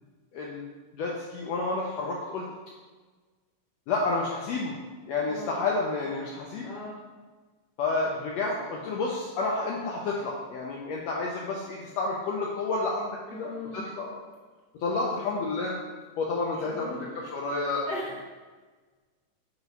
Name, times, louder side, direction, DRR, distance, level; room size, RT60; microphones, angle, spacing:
voice 1, 0.3-0.6 0.9-2.5 3.9-4.7 5.1-6.7 7.8-14.2 14.8-15.8 16.2-17.9, left 3 dB, 85° left, -3 dB, 1.5 m, -30 dB
voice 2, 5.3-5.6 6.6-7.0 13.2-14.0 14.8-15.1 16.6-17.0 17.8-18.2, left 1 dB, 20° left, -7 dB, 1.2 m, -39 dB
5.9 x 2.9 x 5.4 m, 1.3 s
omnidirectional pair, 3.7 m